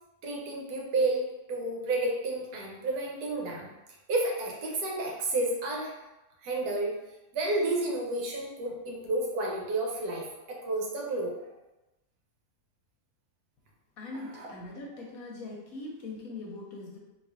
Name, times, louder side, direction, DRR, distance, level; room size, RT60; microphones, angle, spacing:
voice 1, 0.2-3.7 4.1-5.9 6.4-7.0 7.3-11.5 14.3-14.5, right 2 dB, 80° right, -2 dB, 1.3 m, -31 dB
voice 2, 14.0-17.0, left 2 dB, 65° left, -2 dB, 1.1 m, -41 dB
4.2 x 2.8 x 2.4 m, 0.99 s
omnidirectional pair, 1.7 m